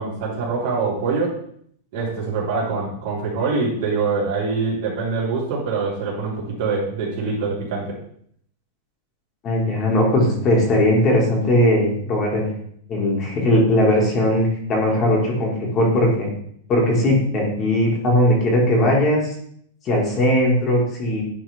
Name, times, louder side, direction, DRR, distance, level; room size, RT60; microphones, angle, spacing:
voice 1, 0.0-1.4 1.9-8.0, right 4 dB, 55° right, -5 dB, 3.1 m, -24 dB
voice 2, 9.4-12.5 12.9-16.3 16.7-19.2 19.9-21.2, left 1 dB, 25° left, -2 dB, 1.9 m, -19 dB
9.7 x 3.9 x 3.5 m, 0.66 s
supercardioid pair, 160°, 0 cm